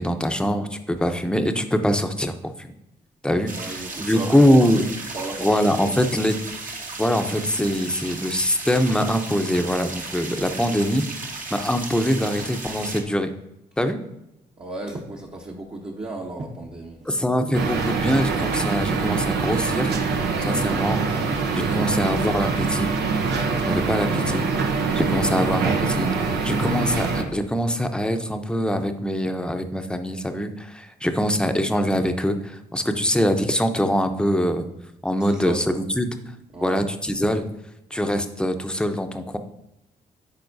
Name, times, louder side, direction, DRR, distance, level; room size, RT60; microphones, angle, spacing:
voice 1, 0.0-2.3 3.2-3.5 4.0-4.8 5.4-6.3 7.0-13.3 13.8-14.0 17.1-20.0 20.5-21.0 21.5-22.9 23.6-34.7 35.0-36.1 36.6-37.4 37.9-39.4, equal, 5° left, 7 dB, 0.8 m, -23 dB
sound 1, 3.5-13.0, right 3 dB, 50° right, 1.3 m, -35 dB
voice 2, 3.6-4.9 5.1-6.1 14.6-17.1 21.6-22.0 35.2-35.6 36.5-36.8, right 2 dB, 30° right, -2 dB, 1.1 m, -34 dB
sound 2, 17.5-27.2, right 4 dB, 70° right, 0.9 m, -24 dB
10.5 x 4.2 x 2.7 m, 0.88 s
supercardioid pair, 50°, 18 cm